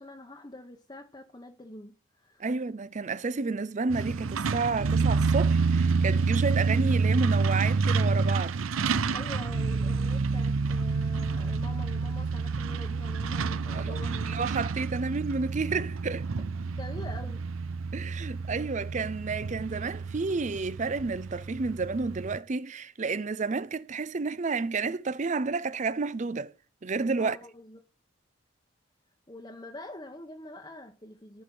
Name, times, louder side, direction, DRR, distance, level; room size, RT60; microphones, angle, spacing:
voice 1, 0.0-2.5 9.1-14.4 16.7-17.5 27.2-27.8 29.3-31.4, left 1 dB, 20° left, 1.0 m, -45 dB
voice 2, 2.4-8.6 13.7-14.0 14.3-16.3 17.9-26.5 26.8-27.4, right 4 dB, 35° right, 0.5 m, -31 dB
Truck, 3.9-22.4, right 4 dB, 80° right, 0.6 m, -28 dB
14.5 x 5.2 x 7.6 m
head